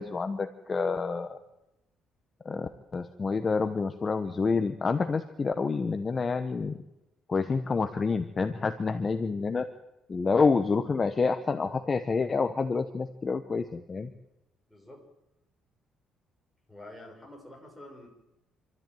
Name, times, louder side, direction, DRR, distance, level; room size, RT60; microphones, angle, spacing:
voice 1, 0.0-1.4 2.4-6.8 7.3-9.7 10.1-14.1, left 4 dB, 25° left, 8 dB, 1.0 m, -28 dB
voice 2, 14.7-15.0 16.7-18.1, left 1 dB, ahead, -1 dB, 6.0 m, -47 dB
27.5 x 13.5 x 9.2 m, 0.93 s
cardioid pair, 135°, 0 cm